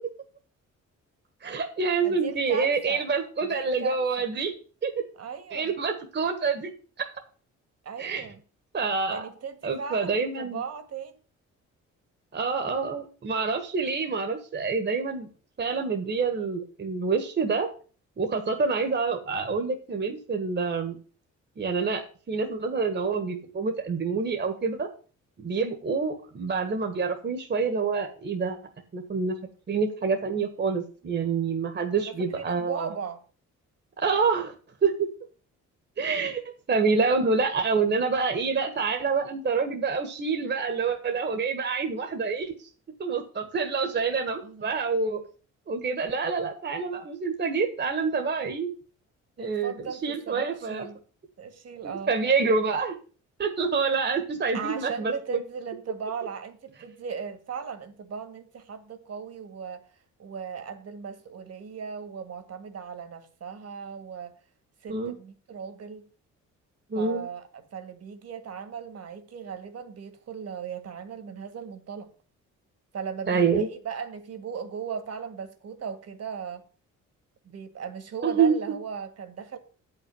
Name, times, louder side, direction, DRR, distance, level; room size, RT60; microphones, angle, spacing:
voice 1, 1.4-4.5 4.8-4.9 5.5-6.7 7.0-7.1 8.0-8.3 8.7-9.3 9.6-10.6 12.3-15.3 15.6-17.7 18.2-21.0 21.6-24.9 25.4-28.6 28.9-29.3 29.7-32.9 34.0-34.5 34.8-35.1 36.0-36.4 36.7-42.7 43.0-45.2 45.7-48.7 49.4-50.9 51.8-52.9 53.4-55.4 64.9-65.2 66.9-67.3 73.3-73.7 78.2-78.5, right 5 dB, 35° right, 1.5 m, -27 dB
voice 2, 2.0-3.1 3.4-4.3 5.2-5.7 7.8-8.4 9.1-11.2 32.0-33.2 44.4-44.7 49.4-51.0 51.4-52.1 54.5-59.8 60.2-64.4 64.8-66.1 66.9-72.1 72.9-76.6 77.5-79.6, right 6 dB, 55° right, 1.9 m, -37 dB
8.5 x 5.8 x 7.0 m
cardioid pair, 90°, 30 cm